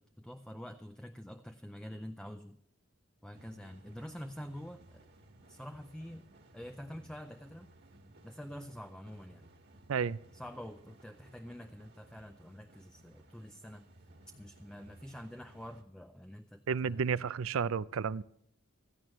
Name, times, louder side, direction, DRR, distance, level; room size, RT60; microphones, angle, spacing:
voice 1, 0.0-2.6 3.2-5.1 5.5-6.2 6.5-7.7 8.2-9.5 10.3-13.8 14.4-17.3, equal, 5° left, 0.4 m, -47 dB
sound 1, 3.3-15.8, right 1 dB, 50° right, 1.6 m, -59 dB
voice 2, 16.7-18.2, right 6 dB, 75° right, 0.4 m, -32 dB
16.5 x 14.5 x 3.1 m
head